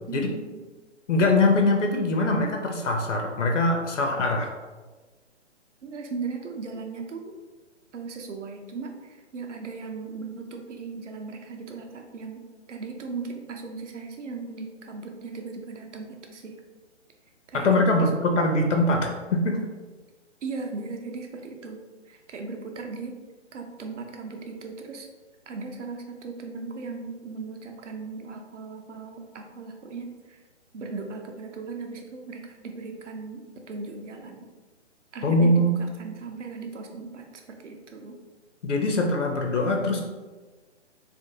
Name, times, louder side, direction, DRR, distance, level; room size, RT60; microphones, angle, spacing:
voice 1, 0.1-0.6 5.8-7.4 7.9-12.4 12.7-16.5 17.5-18.0 18.3-18.4 19.0-19.1 20.4-21.8 22.1-23.1 23.5-25.1 25.5-30.4 30.7-34.5 35.1-38.2, right 4 dB, 75° right, 3 dB, 0.6 m, -37 dB
voice 2, 1.1-4.5 17.5-19.6 35.2-35.8 38.6-40.0, left 2 dB, 80° left, 3 dB, 0.6 m, -22 dB
2.5 x 2.5 x 2.7 m, 1.3 s
figure-of-eight pair, 140°, 37 cm